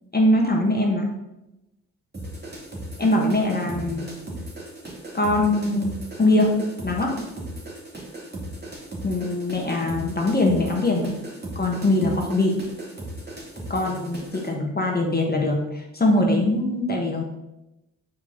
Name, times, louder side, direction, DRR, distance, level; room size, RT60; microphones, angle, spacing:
voice 1, 0.1-1.1 3.0-4.1 5.1-6.5 6.8-7.1 9.0-11.2 11.5-12.6 13.7-17.2, left 1 dB, 20° left, 0 dB, 1.5 m, -22 dB
sound 1, 2.1-14.5, right 1 dB, 25° right, 2.4 m, -37 dB
7.6 x 4.7 x 3.9 m, 0.94 s
hypercardioid pair, 50°, 42 cm